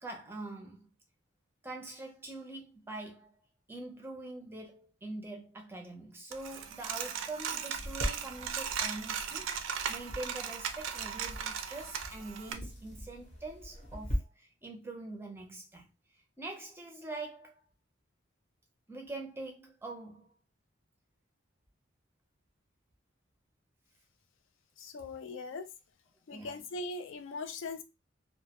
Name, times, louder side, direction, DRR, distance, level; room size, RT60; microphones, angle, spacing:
voice 1, 0.0-0.9 1.6-3.4 3.7-15.9 16.4-17.5 18.9-20.3 26.3-26.6, right 2 dB, 10° right, 0.5 m, -44 dB
Coin (dropping), 6.3-12.5, right 7 dB, 70° right, 0.3 m, -37 dB
sound 1, 7.7-14.2, equal, 35° left, 0.7 m, -41 dB
voice 2, 24.8-25.7 26.3-27.8, left 3 dB, 70° left, 0.4 m, -40 dB
2.2 x 2.1 x 2.8 m
head